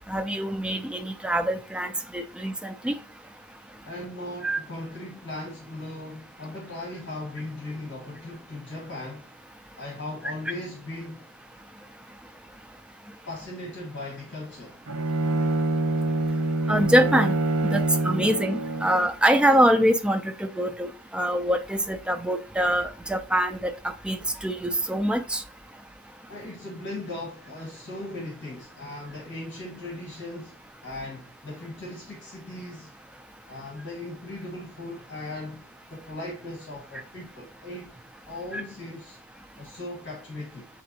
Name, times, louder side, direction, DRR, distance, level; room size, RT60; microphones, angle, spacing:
voice 1, 0.1-3.0 4.4-4.6 16.7-17.4 17.6-25.4 38.5-38.6, right 1 dB, 5° right, 0.3 m, -24 dB
voice 2, 3.8-9.3 9.7-11.2 13.2-14.8 26.3-32.9 33.5-35.6 35.9-37.9 38.3-39.2 39.6-40.7, left 2 dB, 55° left, 1.4 m, -38 dB
Bowed string instrument, 14.9-19.1, right 2 dB, 85° right, 0.8 m, -26 dB
7.5 x 2.6 x 2.7 m
head